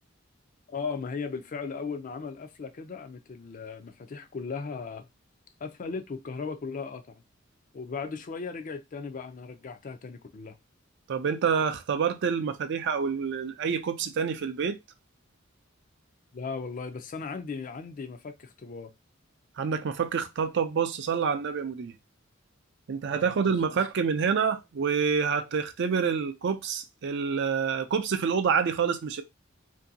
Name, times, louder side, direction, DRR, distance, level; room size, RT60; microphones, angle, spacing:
voice 1, 0.7-5.1 5.6-7.2 7.7-10.6 16.3-18.9 23.1-23.5, left 5 dB, 40° left, 0.4 m, -37 dB
voice 2, 11.1-14.8 19.6-21.9 22.9-29.2, right 6 dB, 60° right, 0.4 m, -27 dB
2.7 x 2.6 x 2.6 m
head